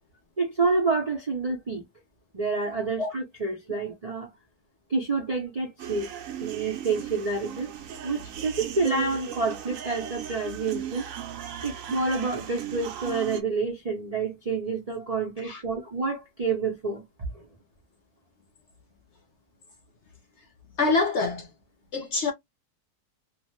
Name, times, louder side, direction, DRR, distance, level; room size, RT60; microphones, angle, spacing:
voice 1, 0.4-1.8 2.3-4.3 4.9-6.1 6.4-7.7 8.0-11.1 11.6-17.0 17.3-17.4, right 4 dB, 50° right, 0.4 m, -28 dB
sound 1, 5.8-13.4, right 9 dB, 70° right, 0.8 m, -37 dB
voice 2, 20.8-21.5 21.9-22.3, left 3 dB, 60° left, 0.7 m, -25 dB
2.6 x 2.1 x 3.0 m
omnidirectional pair, 1.7 m